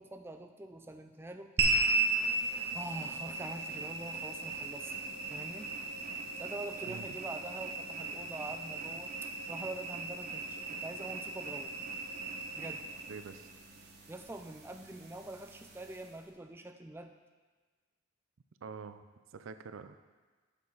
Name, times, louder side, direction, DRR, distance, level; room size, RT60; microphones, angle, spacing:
voice 1, 0.0-1.5 2.7-4.9 5.3-5.7 6.4-11.7 12.6-12.8 14.1-17.1, right 2 dB, 10° right, 5 dB, 0.4 m, -45 dB
sound 1, 1.6-16.2, right 3 dB, 55° right, 1.1 m, -36 dB
voice 2, 13.1-13.5 18.6-19.0 19.3-20.0, right 5 dB, 90° right, 10 dB, 0.5 m, -45 dB
8.3 x 7.0 x 3.9 m, 1.4 s
head